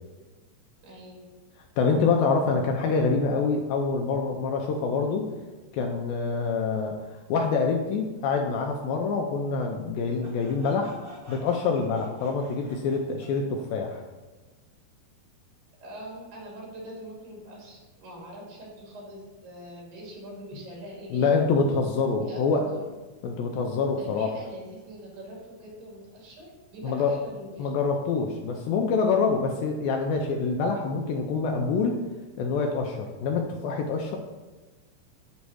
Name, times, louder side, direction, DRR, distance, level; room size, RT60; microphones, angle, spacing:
voice 1, 0.8-1.3 15.8-21.5 22.2-22.9 24.0-27.7, equal, 80° right, -4 dB, 4.2 m, -43 dB
voice 2, 1.8-5.2 5.7-11.0 11.3-14.0 21.1-22.7 23.2-24.3 26.8-27.1 27.6-32.0 32.4-34.2, left 4 dB, 80° left, 2 dB, 2.1 m, -26 dB
Sawing, 10.2-13.4, right 1 dB, 45° right, 1.6 m, -49 dB
8.1 x 3.1 x 6.1 m, 1.2 s
omnidirectional pair, 4.5 m